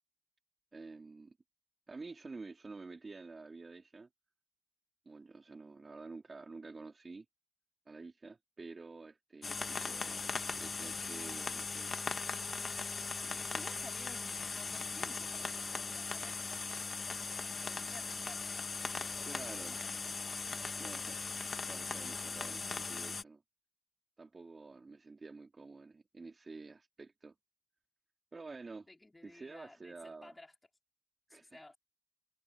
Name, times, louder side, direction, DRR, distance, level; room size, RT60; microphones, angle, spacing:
voice 1, 0.7-1.4 1.9-4.1 5.1-7.3 7.9-11.9 13.2-13.5 19.3-19.7 20.8-21.2 21.7-23.4 24.2-27.3 28.3-28.9 29.2-30.3 31.3-31.7, right 3 dB, 25° right, 2.5 m, -50 dB
sound 1, 9.4-23.2, left 4 dB, 35° left, 1.4 m, -39 dB
voice 2, 13.5-21.0 24.8-25.0 28.9-30.5 31.3-31.8, left 2 dB, 15° left, 4.9 m, -56 dB
cardioid pair, 90°, 0 cm